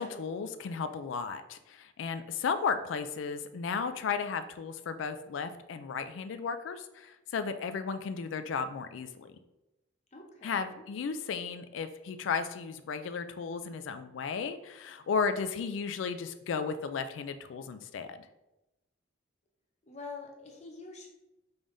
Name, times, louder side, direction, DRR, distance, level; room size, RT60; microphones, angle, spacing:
voice 1, 0.0-9.3 10.4-18.3, left 5 dB, 90° left, 10 dB, 0.3 m, -34 dB
voice 2, 10.1-10.8 19.9-21.1, left 3 dB, 35° left, 1 dB, 0.7 m, -46 dB
5.3 x 3.4 x 2.6 m, 0.95 s
head